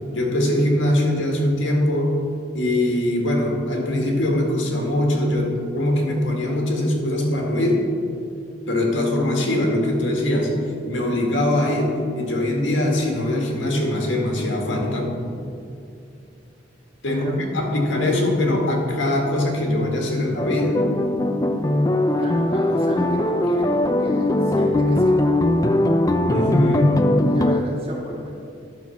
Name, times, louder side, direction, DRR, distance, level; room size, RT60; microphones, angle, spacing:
voice 1, 0.1-2.1 2.5-7.8 8.7-10.5 10.8-15.1 17.0-20.8 26.2-27.0, left 1 dB, 85° left, 0 dB, 1.8 m, -22 dB
sound 1, 20.4-27.6, left 1 dB, 20° left, 0.4 m, -20 dB
voice 2, 22.2-25.2 27.1-28.4, equal, 30° right, -3 dB, 1.8 m, -34 dB
11.0 x 6.0 x 5.8 m, 2.4 s
head